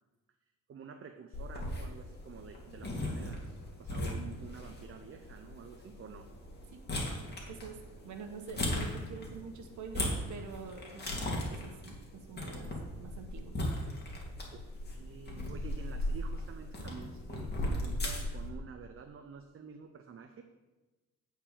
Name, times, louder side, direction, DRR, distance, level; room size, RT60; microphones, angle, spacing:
voice 1, 0.7-6.3 14.5-20.4, right 6 dB, 45° right, 6 dB, 0.7 m, -49 dB
sound 1, 1.3-18.5, left 1 dB, 35° left, 2.3 m, -38 dB
voice 2, 6.7-7.8 8.0-12.7 13.0-13.5, right 5 dB, 70° right, 5 dB, 1.4 m, -47 dB
8.7 x 4.5 x 7.4 m, 1.2 s
cardioid pair, 90°, 30 cm